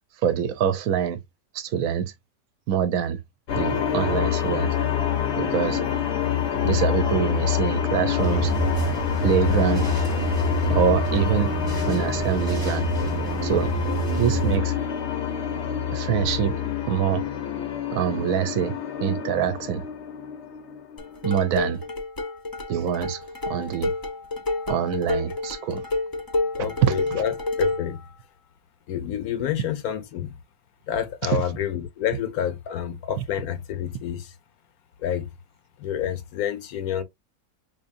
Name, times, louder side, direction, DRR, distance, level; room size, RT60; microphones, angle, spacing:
voice 1, 0.2-1.2 1.5-2.1 2.7-3.2 3.5-4.8 5.4-5.8 6.6-8.5 9.2-9.9 10.7-11.5 11.9-12.9 13.4-13.7 14.2-14.7 15.9-16.6 16.9-17.2 17.9-19.8 21.2-21.8 22.7-23.2 23.5-23.9 24.7-25.8 26.8-27.0 31.2-31.4, right 9 dB, 75° right, 1.0 m, -24 dB
sound 1, 3.5-21.8, left 9 dB, 60° left, 0.8 m, -27 dB
sound 2, 8.2-14.6, right 7 dB, 20° right, 0.8 m, -28 dB
sound 3, 21.0-28.0, left 3 dB, 25° left, 0.4 m, -29 dB
voice 2, 26.6-28.0 28.9-30.3 30.9-34.3 35.0-35.3 35.8-37.0, left 9 dB, 80° left, 1.2 m, -28 dB
4.6 x 2.7 x 2.5 m
omnidirectional pair, 1.6 m